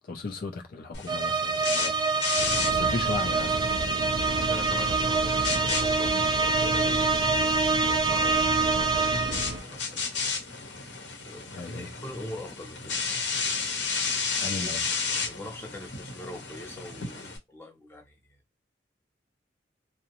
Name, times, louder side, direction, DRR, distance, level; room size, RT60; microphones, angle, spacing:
voice 1, 0.0-2.0 2.7-3.9 11.5-11.9 14.4-14.8, left 3 dB, 50° left, 0.4 m, -36 dB
sound 1, 0.9-17.4, left 4 dB, 70° left, 0.9 m, -34 dB
sound 2, 1.1-9.6, right 4 dB, 25° right, 0.4 m, -26 dB
sound 3, 2.4-9.6, right 2 dB, 80° right, 0.5 m, -35 dB
voice 2, 4.3-7.5 7.8-9.8 10.1-10.3 10.6-10.9 11.2-13.1 14.6-14.7 15.1-18.4, left 1 dB, 15° left, 0.6 m, -43 dB
2.6 x 2.0 x 2.9 m
head